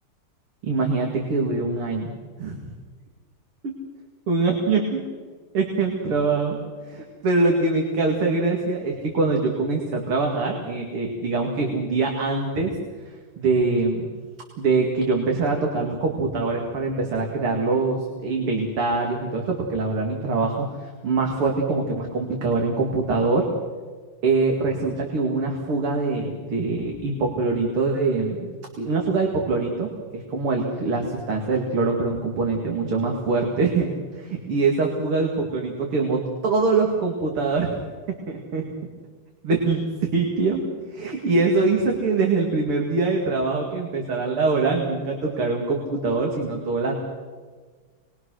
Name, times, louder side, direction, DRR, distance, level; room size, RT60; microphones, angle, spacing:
voice 1, 0.6-2.1 2.4-2.7 3.6-3.7 4.3-5.0 5.5-6.6 6.8-12.7 13.4-14.1 14.6-20.7 21.0-23.5 24.2-37.7 38.3-38.6 39.4-40.6 40.9-46.9, right 3 dB, 80° right, 0 dB, 3.2 m, -23 dB
27.5 x 22.5 x 6.4 m, 1.5 s
omnidirectional pair, 2.4 m